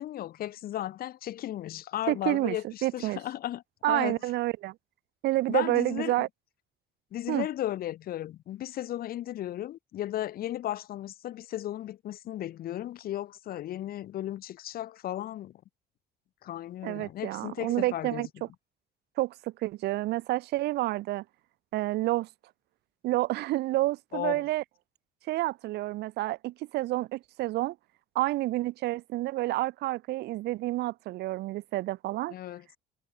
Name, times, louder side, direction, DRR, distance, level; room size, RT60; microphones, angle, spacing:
voice 1, 0.0-3.6 3.9-4.2 5.5-6.3 7.1-15.5 16.4-18.3 24.1-24.4 32.3-32.6, left 13 dB, 60° left, 1.3 m, -35 dB
voice 2, 2.1-3.2 3.8-4.7 5.2-6.3 7.3-7.5 16.8-18.5 19.2-21.2 21.7-22.3 23.0-24.6 25.3-27.8 28.1-32.3, right 17 dB, 75° right, 0.9 m, -29 dB
cardioid pair, 110°, 17 cm